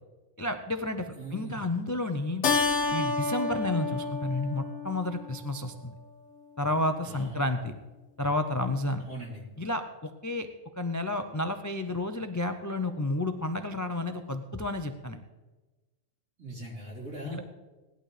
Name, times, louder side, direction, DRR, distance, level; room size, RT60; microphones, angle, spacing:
voice 1, 0.4-2.4 2.9-5.9 6.6-7.7 8.2-9.0 9.6-10.5 10.8-15.2 17.2-17.4, left 2 dB, 30° left, 7 dB, 0.3 m, -31 dB
voice 2, 1.2-1.6 7.0-7.4 9.1-9.4 16.4-17.4, right 1 dB, 70° right, -5 dB, 4.3 m, -40 dB
Keyboard (musical), 2.4-5.3, left 4 dB, 60° left, 1.1 m, -29 dB
18.5 x 11.5 x 3.3 m, 1.2 s
omnidirectional pair, 1.4 m